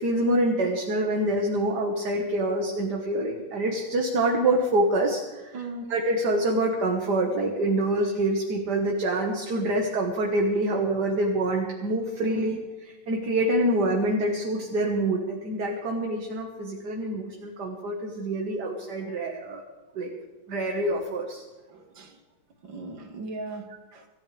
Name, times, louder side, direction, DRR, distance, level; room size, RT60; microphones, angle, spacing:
voice 1, 0.0-5.6 5.9-19.6 20.0-20.1 20.5-21.5, right 1 dB, 60° right, 1 dB, 2.2 m, -26 dB
voice 2, 5.5-5.9 12.3-12.5 19.1-19.2 20.0-20.1 21.7-22.2 22.7-23.7 23.9-24.1, right 2 dB, 80° right, 3 dB, 2.7 m, -38 dB
25.5 x 14.5 x 3.5 m, 1.2 s
omnidirectional pair, 2.0 m